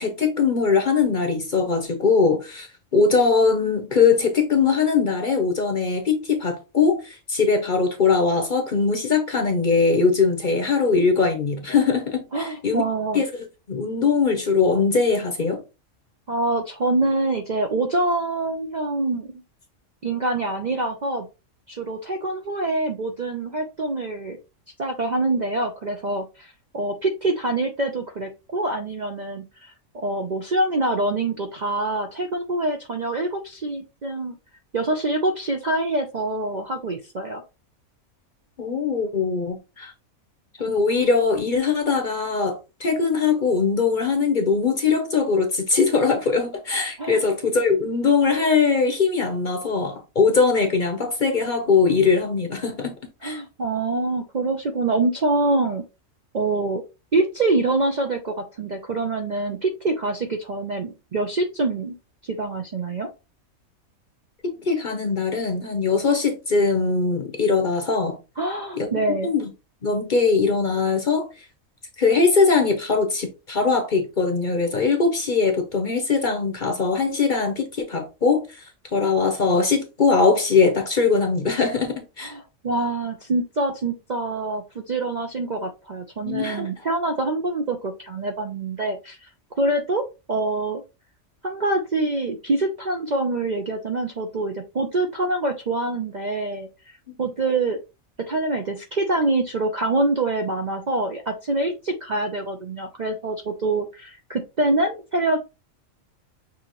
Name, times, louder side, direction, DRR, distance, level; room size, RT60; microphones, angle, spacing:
voice 1, 0.0-12.8 13.1-13.3 13.7-15.6 38.6-39.9 40.6-53.0 53.2-53.4 64.4-68.2 68.7-68.9 69.2-69.5 69.8-71.3 72.0-82.3 86.2-86.7 97.1-97.2, left 4 dB, 40° left, 0.8 m, -21 dB
voice 2, 12.3-13.2 16.3-19.3 20.0-21.3 21.7-24.4 24.8-34.4 34.7-37.4 47.0-47.2 53.2-55.8 56.3-56.8 57.1-62.0 62.2-63.1 68.4-69.3 82.2-89.3 89.6-90.8 91.4-96.7 97.2-97.8 98.3-105.4, right 2 dB, 45° right, 0.5 m, -25 dB
6.2 x 2.9 x 3.0 m
omnidirectional pair, 1.4 m